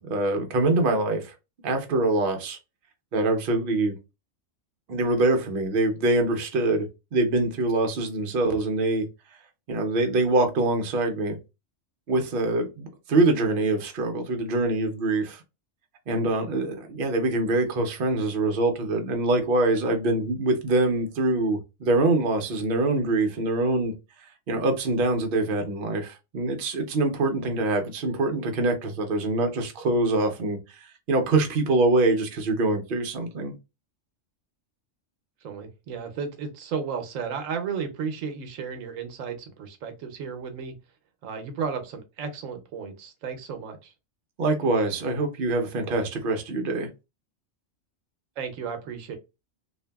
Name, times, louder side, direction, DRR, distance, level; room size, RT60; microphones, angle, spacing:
voice 1, 0.0-1.3 1.6-2.6 3.1-3.9 4.9-9.0 9.7-11.4 12.1-15.4 16.1-23.9 24.5-33.5 44.4-46.9, right 2 dB, 55° right, 0.7 m, -24 dB
voice 2, 35.4-40.7 41.2-43.9 48.4-49.2, right 6 dB, 85° right, 1.0 m, -34 dB
2.7 x 2.5 x 2.2 m
omnidirectional pair, 1.3 m